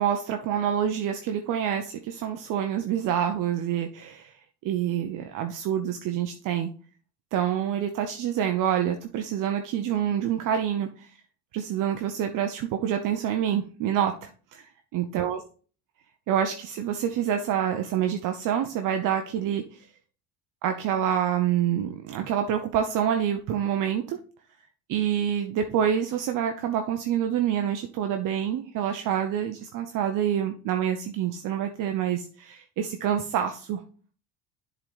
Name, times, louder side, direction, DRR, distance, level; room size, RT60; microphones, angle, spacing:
voice 1, 0.0-4.3 4.6-6.7 7.3-11.1 11.5-15.4 16.3-19.9 20.6-24.2 24.9-33.8, right 9 dB, 65° right, 6 dB, 0.8 m, -27 dB
7.3 x 4.0 x 4.8 m, 0.39 s
supercardioid pair, 80°, 35 cm